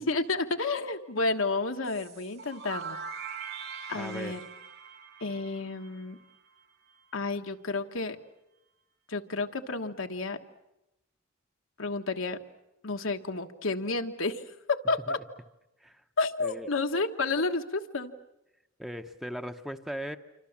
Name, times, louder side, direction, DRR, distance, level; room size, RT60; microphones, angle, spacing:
voice 1, 0.0-3.0 3.9-4.4 5.2-6.2 7.1-8.2 9.1-10.4 11.8-12.4 12.8-14.4 14.7-15.2 16.2-18.1, left 3 dB, 80° left, 5 dB, 1.4 m, -31 dB
sound 1, 1.8-6.6, right 6 dB, 65° right, 4.5 m, -42 dB
voice 2, 3.9-4.4 15.1-15.2 15.8-16.0 16.4-16.7 18.8-20.2, equal, ahead, 7 dB, 0.9 m, -38 dB
27.5 x 25.0 x 7.3 m, 0.93 s
head